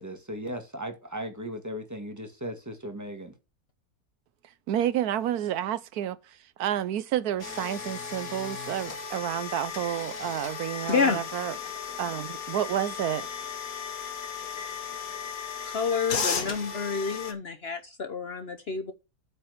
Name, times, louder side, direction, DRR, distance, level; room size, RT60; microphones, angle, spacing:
voice 1, 0.0-3.3, equal, 10° right, 1.8 m, -37 dB
voice 2, 4.7-11.6 12.0-13.3, right 11 dB, 80° right, 1.2 m, -30 dB
sound 1, 7.4-17.3, left 6 dB, 70° left, 1.8 m, -35 dB
voice 3, 10.9-11.2 15.6-18.9, left 5 dB, 50° left, 0.9 m, -28 dB
8.6 x 4.4 x 6.5 m
omnidirectional pair, 1.6 m